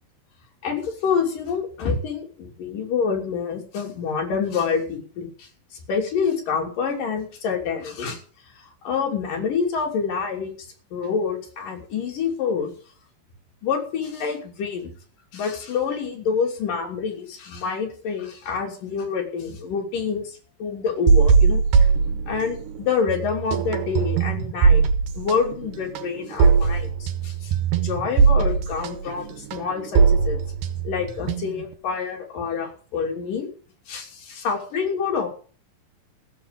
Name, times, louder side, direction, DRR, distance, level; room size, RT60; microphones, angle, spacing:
voice 1, 0.6-8.2 8.6-12.7 13.6-14.9 15.3-21.9 22.3-24.9 25.1-30.4 30.8-33.5 33.9-35.3, left 6 dB, 65° left, 2 dB, 4.6 m, -27 dB
sound 1, 21.1-22.8 23.1-31.7, right 5 dB, 70° right, 2.6 m, -20 dB
15.0 x 7.2 x 8.5 m, 0.42 s
omnidirectional pair, 4.1 m